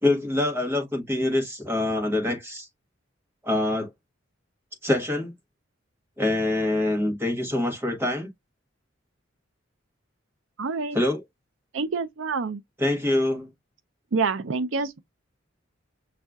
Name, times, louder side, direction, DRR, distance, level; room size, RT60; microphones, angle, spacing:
voice 1, 0.0-2.7 3.4-3.9 4.8-5.3 6.2-8.3 10.9-11.2 12.8-13.5, left 1 dB, 10° right, 1.1 m, -25 dB
voice 2, 10.6-11.0 11.7-12.6 14.1-15.0, right 4 dB, 85° right, 0.6 m, -27 dB
6.3 x 2.4 x 2.3 m
head